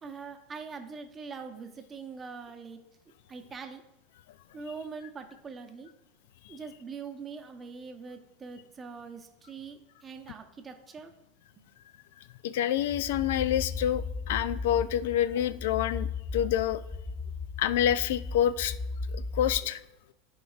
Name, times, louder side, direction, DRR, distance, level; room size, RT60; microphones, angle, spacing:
voice 1, 0.0-2.8 3.3-3.8 4.5-5.9 6.5-11.1, right 5 dB, 20° right, 5 dB, 0.8 m, -43 dB
voice 2, 12.4-16.1 16.3-16.8 17.6-18.7 19.1-19.8, left 11 dB, 80° left, 16 dB, 0.3 m, -27 dB
sound 1, 12.8-19.6, left 4 dB, 5° left, 0.4 m, -36 dB
14.0 x 4.7 x 2.4 m, 0.89 s
supercardioid pair, 140°, 0 cm